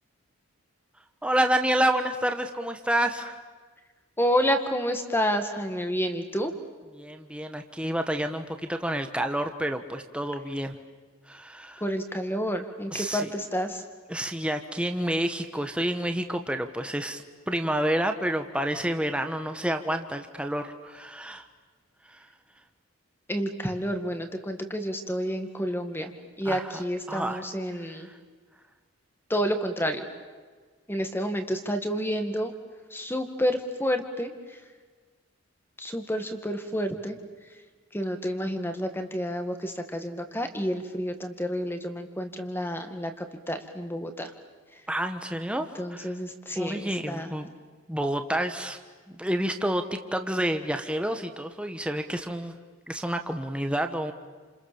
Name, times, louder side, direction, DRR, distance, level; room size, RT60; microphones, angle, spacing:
voice 1, 1.2-3.4 7.0-10.8 11.3-11.8 12.9-13.3 14.1-21.5 22.1-22.3 26.4-26.8 27.1-27.4 28.0-28.2 44.9-46.1 46.5-47.5 47.9-48.8 49.1-52.6 52.9-54.1, right 1 dB, 5° right, 6 dB, 1.3 m, -29 dB
voice 2, 4.2-6.5 11.8-13.8 23.3-26.1 26.4-28.1 29.3-30.1 30.9-32.5 32.9-34.6 35.8-37.2 37.5-37.6 37.9-44.3 44.7-44.8 45.7-47.3, equal, 10° left, 7 dB, 2.0 m, -29 dB
29.5 x 28.0 x 7.1 m, 1.4 s
head